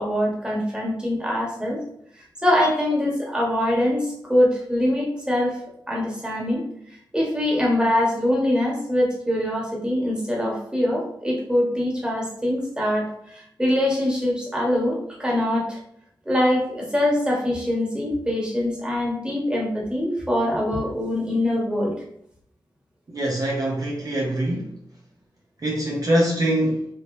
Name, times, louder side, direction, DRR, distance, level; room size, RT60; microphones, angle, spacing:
voice 1, 0.0-1.8 2.4-5.6 5.9-6.6 7.1-15.8 16.2-21.9, left 1 dB, 10° right, -3 dB, 1.3 m, -23 dB
voice 2, 23.1-24.7 25.6-26.9, right 1 dB, 45° right, -3 dB, 0.8 m, -23 dB
3.5 x 2.9 x 2.6 m, 0.71 s
cardioid pair, 60°, 9 cm